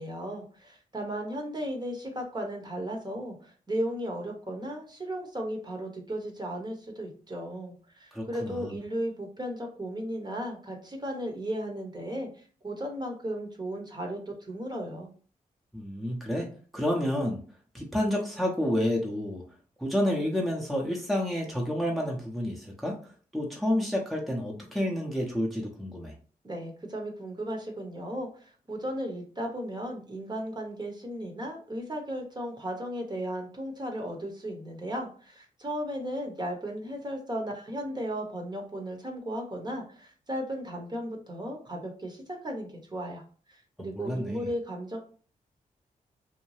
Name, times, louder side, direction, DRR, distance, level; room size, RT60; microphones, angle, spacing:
voice 1, 0.0-15.1 26.4-43.2 43.5-45.0, equal, 25° right, 2 dB, 0.9 m, -35 dB
voice 2, 8.1-8.7 15.7-16.5 16.7-17.4 17.7-19.4 19.8-22.9 23.3-26.1 44.0-44.5, left 1 dB, ahead, -1 dB, 0.7 m, -29 dB
2.7 x 2.2 x 3.2 m, 0.41 s
cardioid pair, 55°, 16 cm